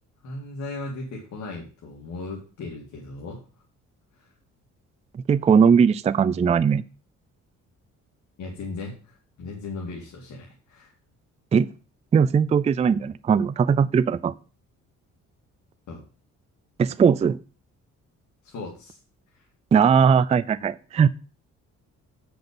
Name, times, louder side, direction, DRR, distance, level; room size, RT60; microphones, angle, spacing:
voice 1, 0.2-3.4 4.2-4.3 8.4-10.9 15.9-16.0 18.4-19.0 19.3-19.5, left 3 dB, 70° left, 2.3 m, -37 dB
voice 2, 5.3-6.8 11.5-11.7 12.1-14.3 16.8-17.4 19.7-21.1, right 6 dB, 20° right, 0.3 m, -19 dB
8.2 x 6.1 x 5.2 m
cardioid pair, 90°, 30 cm